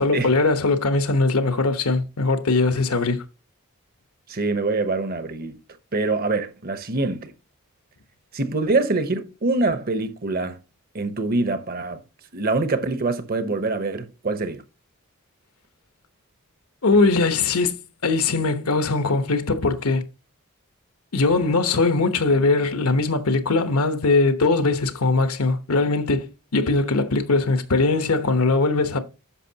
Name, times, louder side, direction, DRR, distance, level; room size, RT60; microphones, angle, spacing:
voice 1, 0.0-3.2 16.8-20.0 21.1-29.0, left 3 dB, 80° left, 1.1 m, -21 dB
voice 2, 4.3-5.6 5.9-7.3 8.3-10.6 10.9-12.0 12.3-14.6, right 3 dB, 40° right, 0.9 m, -24 dB
10.0 x 6.4 x 2.9 m
head